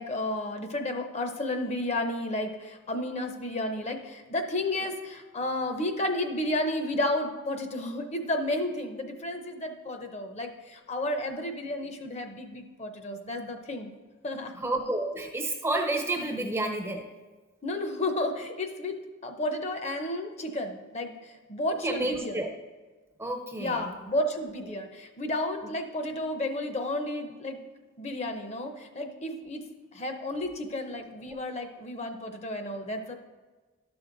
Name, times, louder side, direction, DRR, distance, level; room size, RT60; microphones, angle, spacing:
voice 1, 0.0-13.9 14.2-14.5 17.6-19.0 19.2-22.4 23.6-27.6 28.0-29.6 29.9-33.1, left 1 dB, 30° left, 6 dB, 0.6 m, -32 dB
voice 2, 14.6-17.1 21.8-22.5 23.2-23.9, right 2 dB, 10° right, 3 dB, 0.5 m, -30 dB
12.0 x 6.1 x 3.8 m, 1.3 s
head